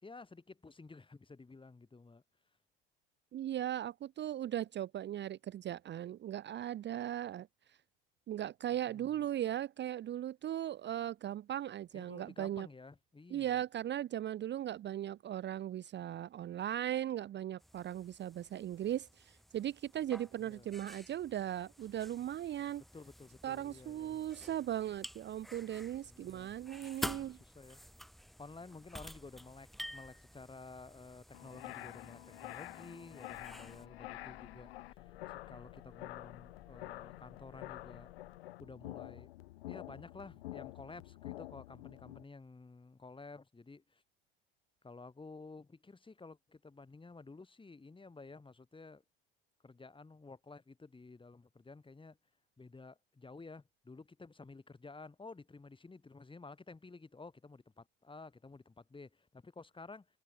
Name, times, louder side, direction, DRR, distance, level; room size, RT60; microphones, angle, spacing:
voice 1, 0.0-2.2 8.7-9.2 11.9-13.6 20.4-20.7 22.9-24.3 26.1-26.6 27.1-27.8 28.4-38.1 38.6-39.3 39.7-44.0 44.8-49.0 49.6-52.2 52.6-60.1, left 3 dB, 15° left, 4.3 m, -53 dB
voice 2, 3.3-7.5 8.3-12.7 13.3-22.8 23.4-27.4, right 11 dB, 35° right, 0.8 m, -38 dB
sound 1, 17.6-33.9, equal, ahead, 5.8 m, -50 dB
sound 2, 31.3-42.2, left 17 dB, 85° left, 0.6 m, -48 dB
sound 3, 33.3-38.4, left 9 dB, 40° left, 4.8 m, -61 dB
hypercardioid pair, 75°, 30 cm